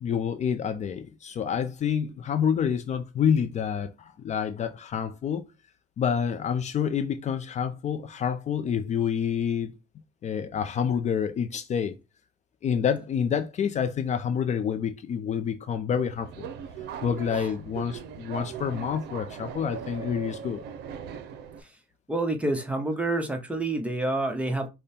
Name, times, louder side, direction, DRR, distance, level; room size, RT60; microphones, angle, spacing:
voice 1, 0.0-5.4 6.0-9.7 10.2-12.0 12.6-16.5 17.0-20.6, left 7 dB, 45° left, 0.5 m, -28 dB
Subway metro underground, 16.0-21.6, right 7 dB, 80° right, 0.6 m, -39 dB
voice 2, 22.1-24.7, right 2 dB, 10° right, 0.9 m, -28 dB
5.2 x 2.2 x 4.3 m
cardioid pair, 110°, 17 cm